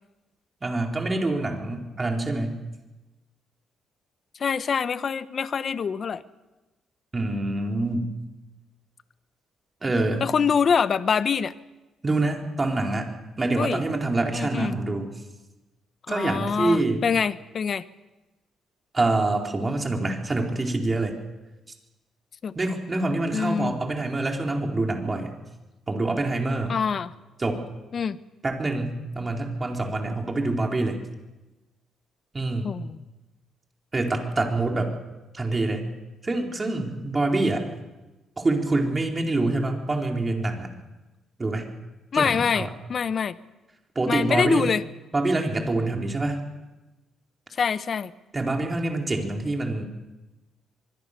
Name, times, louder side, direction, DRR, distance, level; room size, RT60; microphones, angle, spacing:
voice 1, 0.6-2.6 7.1-8.1 9.8-10.3 12.0-15.1 16.1-17.0 18.9-21.2 22.5-25.4 25.9-26.8 27.4-27.6 28.4-31.0 32.3-32.7 33.9-34.9 35.3-35.9 36.2-37.7 38.4-40.7 41.4-41.7 42.1-42.7 43.9-44.6 45.1-46.4 48.3-49.8, right 2 dB, 25° right, 2 dB, 4.3 m, -26 dB
voice 2, 4.4-6.2 10.2-11.5 13.6-13.8 14.3-14.8 16.1-17.8 22.4-22.5 23.3-23.7 26.7-27.1 27.9-28.2 32.6-33.0 42.1-43.4 44.1-44.8 47.6-48.1, left 6 dB, 50° left, 14 dB, 1.1 m, -25 dB
24.5 x 22.0 x 6.9 m, 1.1 s
cardioid pair, 90°, 0 cm